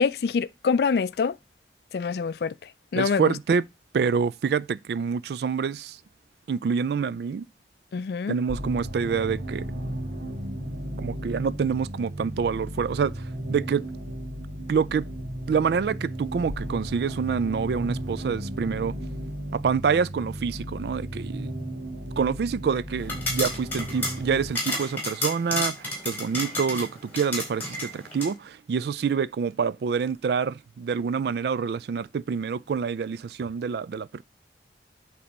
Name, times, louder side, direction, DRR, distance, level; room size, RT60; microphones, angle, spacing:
voice 1, 0.0-1.4 1.9-2.5 2.9-3.3 7.9-8.4, left 5 dB, 65° left, 0.3 m, -25 dB
voice 2, 3.0-3.6 3.9-6.0 6.5-7.5 8.3-9.7 11.0-13.8 14.7-15.1 15.5-18.9 19.5-21.5 22.2-34.2, right 6 dB, 65° right, 0.3 m, -27 dB
sound 1, 8.5-24.5, right 1 dB, 85° right, 1.4 m, -35 dB
sound 2, 23.0-28.3, left 2 dB, 10° left, 2.8 m, -32 dB
8.5 x 3.3 x 5.2 m
head